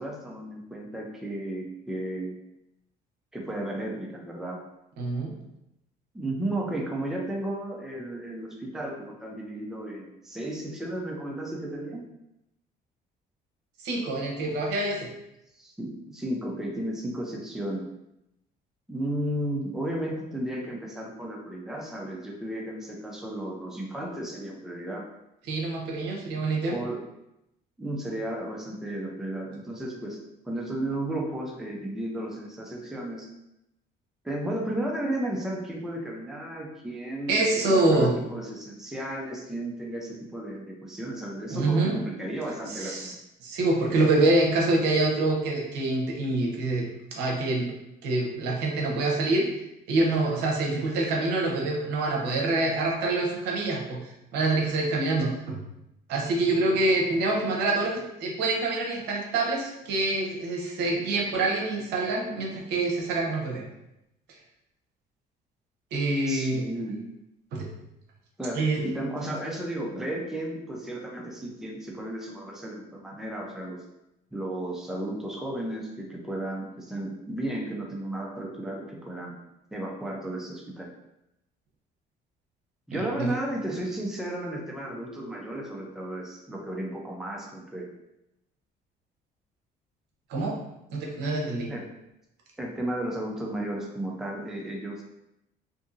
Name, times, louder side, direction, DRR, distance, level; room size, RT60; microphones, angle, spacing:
voice 1, 0.0-2.4 3.3-4.6 6.1-12.0 15.6-17.9 18.9-25.0 26.7-27.0 27.8-30.2 30.5-33.3 34.2-43.1 66.3-67.0 68.4-73.8 74.3-79.3 79.7-80.9 82.9-87.9 91.7-91.8 92.6-95.0, right 1 dB, 5° right, -1 dB, 0.5 m, -34 dB
voice 2, 5.0-5.3 13.8-15.1 25.5-26.7 37.3-38.2 41.5-42.0 42.7-43.1 43.4-47.7 48.0-49.5 49.9-54.0 54.3-55.6 56.1-63.6 65.9-66.7 67.5-67.7 68.5-68.8 82.9-83.3 90.3-90.6 90.9-91.7, right 2 dB, 80° right, -1 dB, 0.7 m, -26 dB
2.6 x 2.6 x 2.5 m, 0.85 s
cardioid pair, 110°, 17 cm